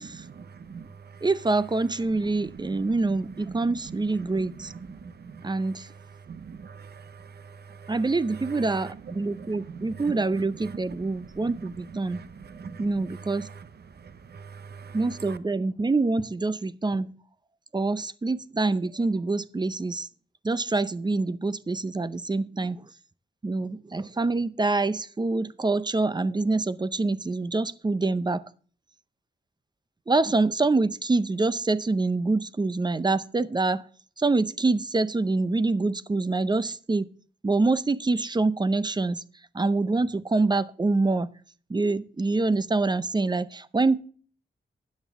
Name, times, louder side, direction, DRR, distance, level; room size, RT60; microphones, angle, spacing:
voice 1, 0.4-1.2 2.2-3.2 3.4-5.5 6.2-8.0 8.4-11.8 12.0-13.7 13.9-15.4, right 5 dB, 60° right, 0.8 m, -42 dB
voice 2, 1.2-4.7 5.4-5.9 7.9-12.2 12.8-13.5 14.9-17.1 17.7-20.1 20.4-22.9 23.4-28.4 30.1-33.8 34.2-37.1 37.4-39.2 39.5-41.3 41.7-44.0, right 3 dB, 25° right, 0.5 m, -25 dB
13.0 x 8.8 x 3.5 m
wide cardioid pair, 100°, 19 cm